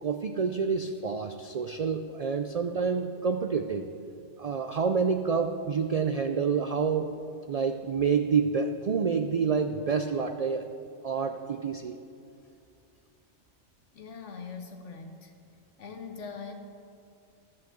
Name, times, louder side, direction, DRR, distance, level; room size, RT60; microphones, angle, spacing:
voice 1, 0.0-3.9 4.4-7.1 7.5-10.7 11.0-12.0, right 5 dB, 80° right, 7 dB, 0.3 m, -28 dB
voice 2, 13.9-15.3 15.8-16.5, left 5 dB, 85° left, 5 dB, 1.4 m, -42 dB
13.0 x 5.5 x 7.6 m, 2.4 s
omnidirectional pair, 1.2 m